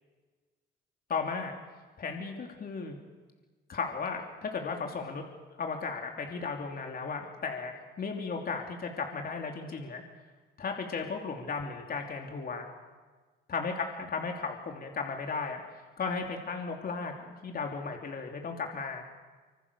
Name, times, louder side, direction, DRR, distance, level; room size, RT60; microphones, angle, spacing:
voice 1, 1.1-1.5 2.0-3.0 3.7-5.2 5.6-10.0 10.6-12.7 13.5-19.0, left 4 dB, 50° left, 2 dB, 3.1 m, -35 dB
25.5 x 25.0 x 7.0 m, 1.4 s
cardioid pair, 90°, 20 cm